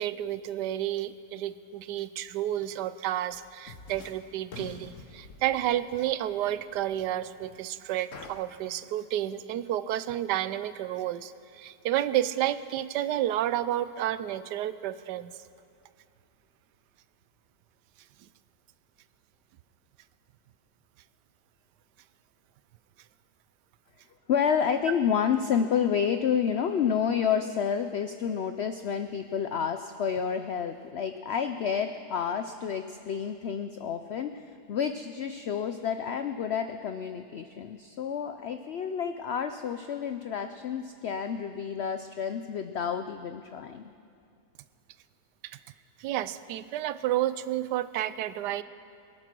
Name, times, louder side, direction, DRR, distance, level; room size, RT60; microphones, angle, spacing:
voice 1, 0.0-15.4 46.0-48.6, right 12 dB, 85° right, 14 dB, 1.2 m, -31 dB
sound 1, 3.3-3.4 3.7-4.2 4.5-7.6 8.1-8.3, left 4 dB, 55° left, 1.4 m, -47 dB
voice 2, 24.3-43.9, left 7 dB, 90° left, 8 dB, 0.5 m, -29 dB
22.0 x 8.9 x 6.1 m, 2.5 s
omnidirectional pair, 1.8 m